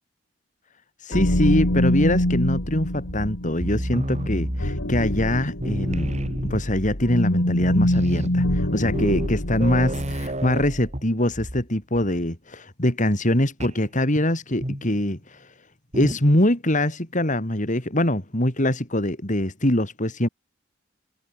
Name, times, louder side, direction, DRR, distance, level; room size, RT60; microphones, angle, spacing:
voice 1, 1.0-6.1 6.4-15.5 15.9-20.3, left 1 dB, 40° left, 4.6 m, -23 dB
sound 1, 1.1-10.3, left 1 dB, 80° left, 3.6 m, -25 dB
sound 2, 3.0-5.3 5.6-6.9 7.3-7.4 7.6-11.7 11.9-12.3 13.6-13.8 14.6-15.0 15.9-16.3, right 1 dB, 35° right, 4.6 m, -31 dB
head